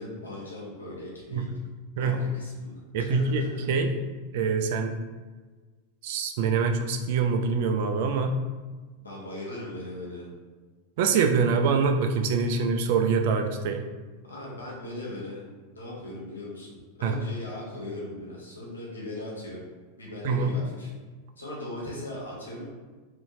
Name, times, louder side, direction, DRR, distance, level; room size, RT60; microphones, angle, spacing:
voice 1, 0.0-1.5 2.0-3.6 9.0-10.3 14.2-15.4 15.7-19.6 20.0-20.9 21.4-22.7, left 1 dB, 85° left, -4 dB, 0.9 m, -38 dB
voice 2, 2.9-3.9 4.3-5.0 6.0-8.4 11.0-13.9 17.0-17.2 20.2-20.5, right 5 dB, 60° right, 6 dB, 0.3 m, -25 dB
2.7 x 2.6 x 2.5 m, 1.3 s
hypercardioid pair, 90°, 0 cm